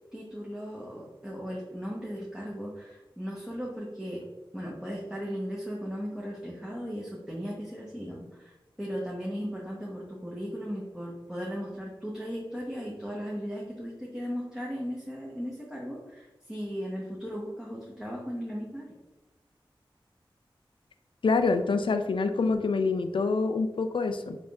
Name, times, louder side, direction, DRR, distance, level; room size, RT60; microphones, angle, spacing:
voice 1, 0.1-4.3 4.5-18.9, equal, 5° right, -4 dB, 0.9 m, -37 dB
voice 2, 21.2-24.4, left 4 dB, 70° left, 8 dB, 0.3 m, -26 dB
4.0 x 3.4 x 2.3 m, 1.0 s
cardioid pair, 40°, 9 cm